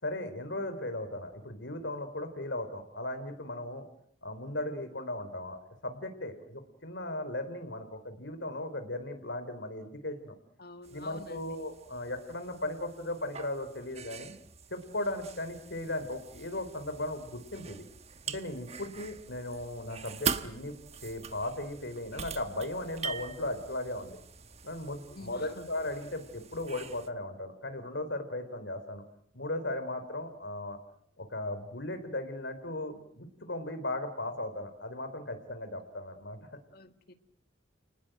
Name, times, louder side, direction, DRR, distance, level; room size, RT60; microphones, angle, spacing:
voice 1, 0.0-3.8 4.2-10.3 10.9-14.3 14.7-17.8 18.3-20.8 21.0-24.2 24.6-29.0 29.3-30.8 31.2-36.4, left 1 dB, 70° left, 8 dB, 3.7 m, -37 dB
voice 2, 10.6-11.7 25.1-25.7 36.7-37.1, left 2 dB, 55° left, 8 dB, 1.9 m, -48 dB
sound 1, 10.8-27.1, right 6 dB, 35° right, 1.2 m, -43 dB
30.0 x 19.5 x 7.8 m, 0.70 s
head